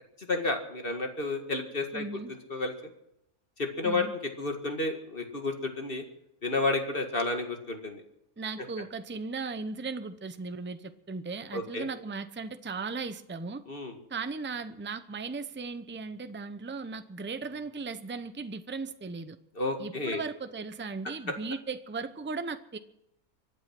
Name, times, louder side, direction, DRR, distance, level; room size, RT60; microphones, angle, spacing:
voice 1, 0.3-2.1 2.5-2.7 3.6-6.0 6.4-8.0 11.5-11.9 13.7-13.9 19.6-20.2, left 3 dB, 40° left, 5 dB, 2.1 m, -31 dB
voice 2, 1.9-2.3 3.8-4.1 8.4-13.6 14.1-19.4 19.8-22.8, right 4 dB, 10° right, 11 dB, 0.6 m, -37 dB
24.5 x 9.5 x 6.1 m, 0.80 s
omnidirectional pair, 1.5 m